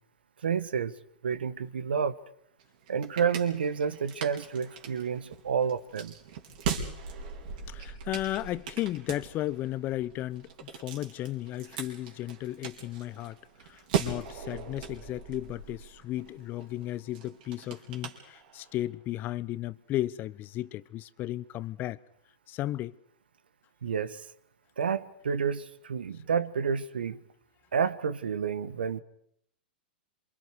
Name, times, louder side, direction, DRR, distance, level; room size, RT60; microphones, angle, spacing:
voice 1, 0.4-1.0 1.2-2.2 2.9-6.1 23.8-24.3 24.8-27.2 27.7-29.0, right 6 dB, 80° right, 1.3 m, -30 dB
sound 1, 2.6-18.8, right 6 dB, 60° right, 4.6 m, -39 dB
voice 2, 7.7-13.4 13.6-22.0 22.5-23.0, left 14 dB, 35° left, 0.9 m, -34 dB
27.5 x 26.0 x 4.8 m
hypercardioid pair, 110°, 5 cm